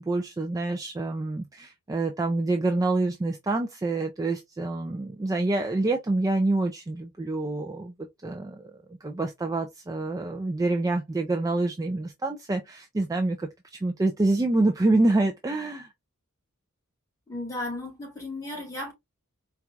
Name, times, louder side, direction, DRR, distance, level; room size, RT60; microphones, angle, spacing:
voice 1, 0.0-15.9, right 2 dB, 15° right, 0.3 m, -27 dB
voice 2, 17.3-18.9, left 2 dB, 15° left, 1.6 m, -35 dB
4.4 x 2.3 x 2.4 m
head